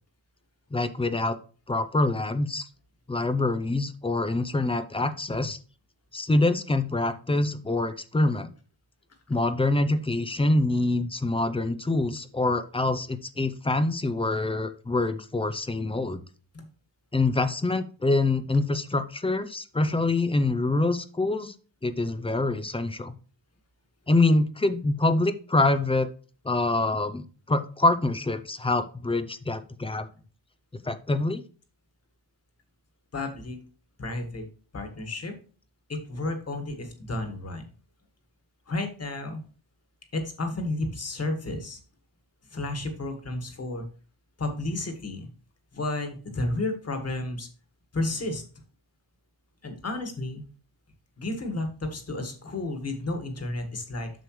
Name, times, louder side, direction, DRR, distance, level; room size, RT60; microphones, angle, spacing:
voice 1, 0.7-1.4 1.7-2.7 3.1-5.6 6.1-8.5 9.3-16.2 17.1-21.5 21.8-23.2 24.1-26.1 26.4-30.1 30.8-31.4, left 2 dB, 10° left, 10 dB, 0.4 m, -25 dB
voice 2, 33.1-33.6 34.0-34.5 34.7-35.4 35.9-37.6 38.7-39.4 40.1-41.8 42.5-43.8 44.4-45.3 45.7-47.5 47.9-48.4 49.6-50.4 51.2-54.1, left 2 dB, 30° left, 6 dB, 1.6 m, -32 dB
7.8 x 6.9 x 3.1 m, 0.39 s
wide cardioid pair, 180°, 48 cm